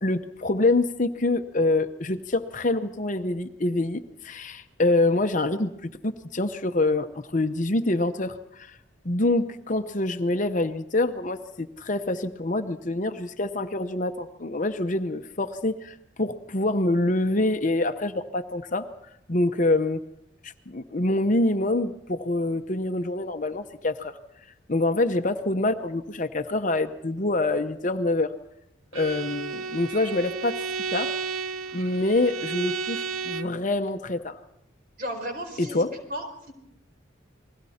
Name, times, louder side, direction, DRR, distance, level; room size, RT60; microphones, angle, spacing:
voice 1, 0.0-7.1 7.3-8.8 9.0-18.8 19.3-20.0 20.4-24.2 24.7-28.3 28.9-30.6 30.9-31.2 31.7-34.4 35.6-35.9, left 2 dB, 40° left, 8 dB, 0.8 m, -26 dB
Bowed string instrument, 28.9-33.6, right 5 dB, 90° right, 0.7 m, -32 dB
voice 2, 35.0-36.5, equal, 45° right, 4 dB, 4.3 m, -35 dB
29.0 x 21.0 x 4.3 m, 0.81 s
head